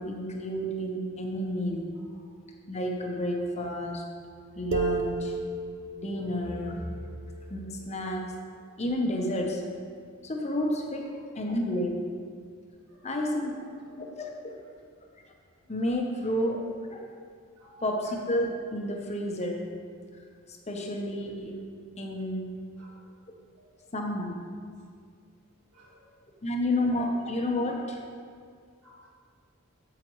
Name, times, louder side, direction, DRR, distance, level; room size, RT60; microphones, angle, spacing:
voice 1, 0.0-1.9 2.7-4.0 4.5-5.4 5.9-7.1 7.5-8.3 8.8-9.6 10.2-11.1 11.4-11.9 13.0-13.5 13.9-14.6 15.7-17.1 17.8-19.7 20.7-21.6 22.0-22.5 23.9-24.3 26.4-28.0, left 1 dB, 30° left, 1 dB, 0.8 m, -30 dB
voice 2, 2.1-2.3 11.1-11.2 12.9-13.2 17.6-17.8 22.8-22.9 25.7-25.9 28.8-29.1, equal, 75° right, -5 dB, 2.0 m, -56 dB
sound 1, 4.7-8.2, right 3 dB, 50° right, 0.4 m, -34 dB
8.7 x 7.5 x 3.1 m, 2.1 s
head